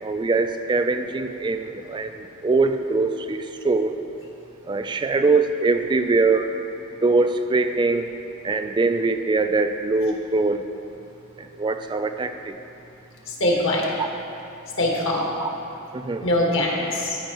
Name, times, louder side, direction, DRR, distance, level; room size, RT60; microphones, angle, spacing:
voice 1, 0.0-3.9 4.7-6.5 7.0-8.1 8.4-10.7 11.4-12.5 14.0-14.1 15.9-16.3, right 3 dB, 20° right, 8 dB, 0.3 m, -22 dB
voice 2, 13.3-13.9 14.8-15.3 16.2-17.2, left 1 dB, 65° left, -2 dB, 1.5 m, -22 dB
14.5 x 5.6 x 3.0 m, 2.8 s
head